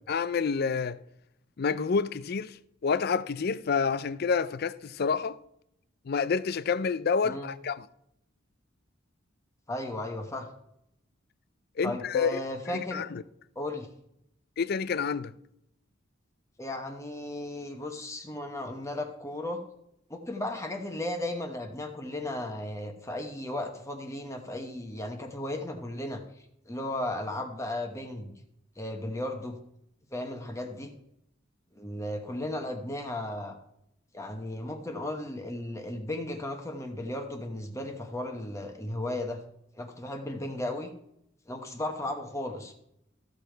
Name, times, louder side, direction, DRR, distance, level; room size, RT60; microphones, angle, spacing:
voice 1, 0.1-1.0 1.6-2.6 2.8-5.4 6.1-7.9 11.8-12.4 12.7-13.2 14.6-15.3, left 5 dB, 50° left, 0.4 m, -28 dB
voice 2, 9.7-10.5 11.8-13.0 13.6-13.9 16.6-19.6 20.1-26.2 26.6-28.3 28.8-29.6 30.1-30.9 31.7-33.5 34.1-39.4 39.7-40.9 41.5-42.7, left 1 dB, 15° left, 1.0 m, -35 dB
14.0 x 6.9 x 4.5 m
head